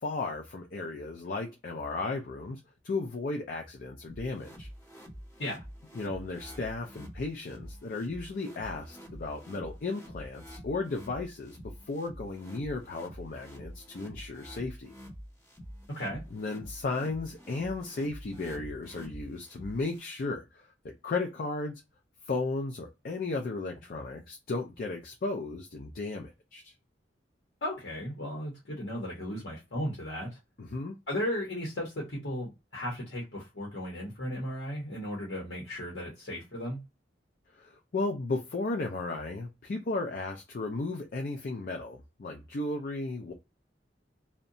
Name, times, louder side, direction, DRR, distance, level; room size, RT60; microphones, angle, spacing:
voice 1, 0.0-2.6 2.8-4.7 5.9-11.6 11.9-14.9 16.3-21.8 22.3-26.7 30.6-30.9 37.5-43.3, left 3 dB, 55° left, 0.5 m, -35 dB
sound 1, 4.1-20.1, equal, 20° left, 1.4 m, -47 dB
voice 2, 15.9-16.2 27.6-30.4 31.1-36.8, equal, 70° left, 0.9 m, -35 dB
2.7 x 2.1 x 2.5 m
head